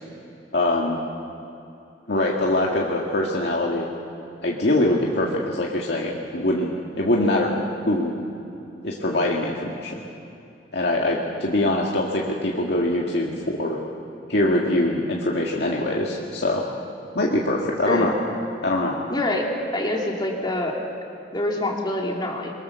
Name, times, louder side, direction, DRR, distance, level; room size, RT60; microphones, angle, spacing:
voice 1, 0.5-1.0 2.1-3.9 4.4-6.7 7.0-7.6 7.9-8.2 8.8-10.0 10.7-13.8 14.3-16.6 17.1-18.1 18.6-19.0, left 1 dB, 65° left, -2 dB, 1.9 m, -23 dB
voice 2, 19.1-20.8 21.3-22.5, left 1 dB, 25° left, -1 dB, 2.5 m, -25 dB
23.5 x 23.5 x 6.9 m, 2.8 s
head